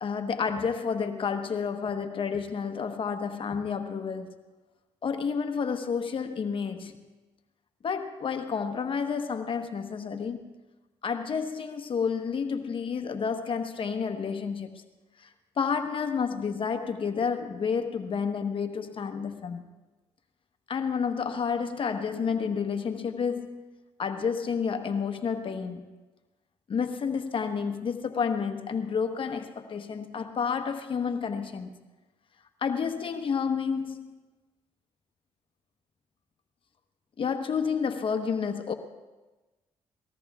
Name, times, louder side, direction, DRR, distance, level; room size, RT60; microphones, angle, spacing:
voice 1, 0.0-4.3 5.0-7.0 7.8-10.5 11.0-14.8 15.2-15.3 15.6-19.6 20.7-23.6 24.0-25.9 26.7-31.7 32.6-34.2 37.2-38.7, left 6 dB, 45° left, 1.1 m, -30 dB
22.0 x 19.5 x 2.4 m
supercardioid pair, 70°, 12 cm